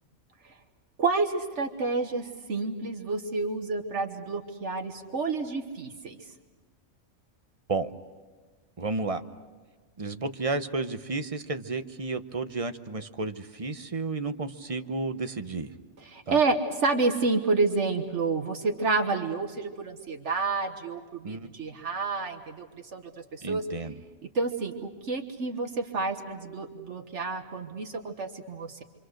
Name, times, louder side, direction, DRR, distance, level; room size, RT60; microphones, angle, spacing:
voice 1, 1.0-6.2 16.0-22.7 22.9-23.0 23.3-23.6 24.3-28.8, right 3 dB, 70° right, 4 dB, 1.6 m, -29 dB
voice 2, 8.8-9.2 10.0-15.7 16.3-16.4 21.2-21.5 23.4-24.0, right 3 dB, 30° right, 9 dB, 0.9 m, -32 dB
27.5 x 25.5 x 6.5 m, 1.4 s
omnidirectional pair, 1.3 m